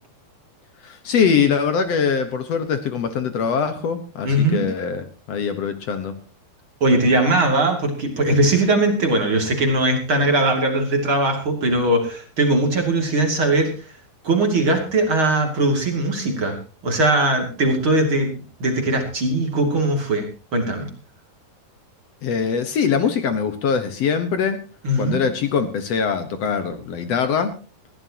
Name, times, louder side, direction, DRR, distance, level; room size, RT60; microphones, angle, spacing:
voice 1, 0.8-6.1 22.2-24.6 25.0-27.5, left 6 dB, 65° left, 9 dB, 1.6 m, -22 dB
voice 2, 4.2-4.6 6.8-13.7 14.2-18.3 18.6-20.3 20.5-20.9 24.8-25.2, right 2 dB, 35° right, 3 dB, 2.8 m, -20 dB
20.5 x 16.0 x 2.9 m, 0.35 s
omnidirectional pair, 4.7 m